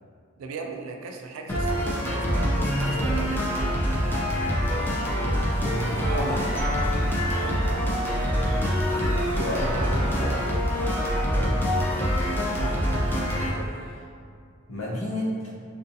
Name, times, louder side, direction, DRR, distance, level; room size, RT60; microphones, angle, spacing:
voice 1, 0.4-3.4 5.6-6.0 7.4-7.6 11.3-11.5 13.5-13.7, right 3 dB, 90° right, 3 dB, 0.3 m, -38 dB
sound 1, 1.5-13.5, equal, 10° left, 0.3 m, -25 dB
sound 2, 5.3-12.3, equal, 45° left, 1.3 m, -42 dB
voice 2, 5.5-6.8 9.2-10.6 12.5-12.8 14.7-15.3, equal, 80° left, -6 dB, 0.7 m, -33 dB
2.5 x 2.2 x 2.6 m, 2.3 s
head